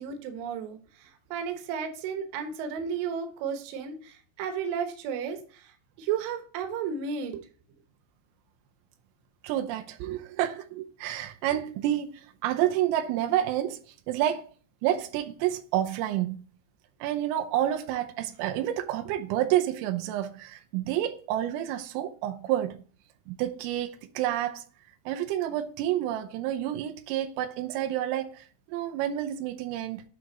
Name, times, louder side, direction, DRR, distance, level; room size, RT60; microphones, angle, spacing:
voice 1, 0.0-7.4, right 7 dB, 70° right, 3.1 m, -33 dB
voice 2, 9.4-13.8 14.1-14.4 14.8-16.4 17.0-22.8 23.3-24.6 25.1-30.0, right 12 dB, 90° right, 3.4 m, -29 dB
9.2 x 4.8 x 4.0 m
omnidirectional pair, 5.9 m